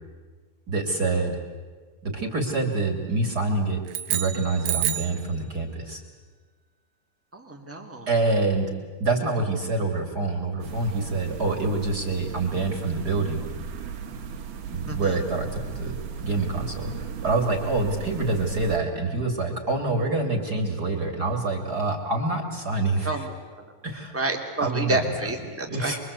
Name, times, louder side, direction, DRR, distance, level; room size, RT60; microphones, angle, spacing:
voice 1, 0.7-1.4 2.0-3.8 4.1-6.0 8.1-8.7 9.0-13.4 14.7-23.2 23.8-24.2 24.6-25.1 25.7-26.0, right 3 dB, 25° right, 4 dB, 2.5 m, -26 dB
sound 1, 3.9-5.2, right 11 dB, 85° right, 3.3 m, -28 dB
voice 2, 7.3-8.1 14.9-15.2 23.0-23.6 24.1-25.9, right 2 dB, 5° right, 2 dB, 1.4 m, -30 dB
sound 2, 10.6-18.8, right 6 dB, 65° right, 3.6 m, -37 dB
27.0 x 23.0 x 8.3 m, 1.5 s
omnidirectional pair, 5.0 m